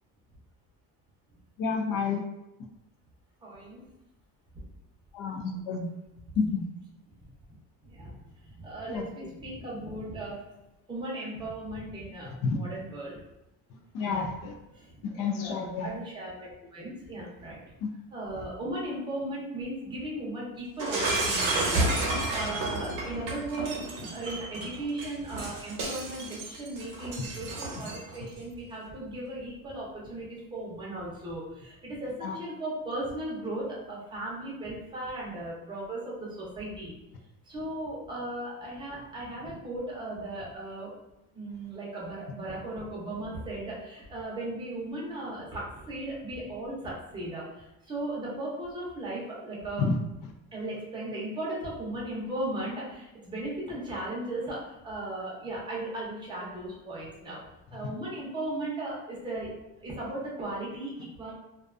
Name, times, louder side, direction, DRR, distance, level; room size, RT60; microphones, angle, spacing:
voice 1, 1.6-2.2 5.1-5.9 6.4-6.6 8.9-9.0 12.4-12.6 13.9-14.5 15.0-15.9 32.2-32.4 49.8-49.9, left 5 dB, 65° left, 3 dB, 0.5 m, -29 dB
voice 2, 3.4-3.8 7.8-8.1 8.4-10.4 10.9-13.2 14.0-14.3 14.7-17.6 18.1-23.8 24.1-37.0 37.5-40.9 41.3-49.9 50.5-57.4 57.7-59.5 59.8-61.3, right 1 dB, 15° right, -5 dB, 0.6 m, -37 dB
Shatter, 20.8-28.2, right 2 dB, 60° right, 0.8 m, -31 dB
2.4 x 2.3 x 2.4 m, 0.91 s
cardioid pair, 155°, 36 cm